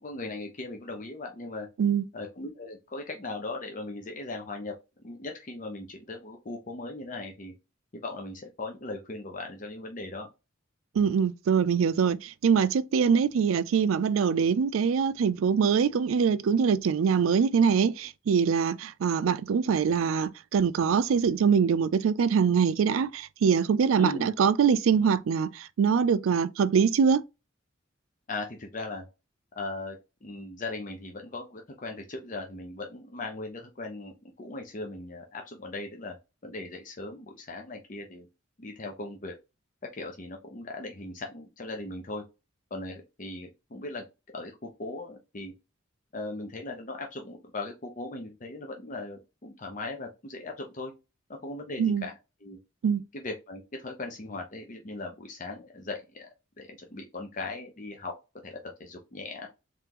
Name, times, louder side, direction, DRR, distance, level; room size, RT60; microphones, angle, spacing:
voice 1, 0.0-1.7 2.1-4.7 5.0-7.5 7.9-10.3 23.9-24.3 28.3-29.0 29.5-36.2 36.4-38.3 38.6-39.3 39.9-42.2 42.7-44.0 44.3-45.5 46.1-50.9 51.3-52.1 52.4-52.6 53.1-56.3 56.6-58.1 58.4-59.5, left 2 dB, 40° left, 0.6 m, -38 dB
voice 2, 10.9-27.2 51.8-52.1 52.8-53.0, right 6 dB, 85° right, 0.4 m, -24 dB
3.7 x 3.2 x 2.9 m
head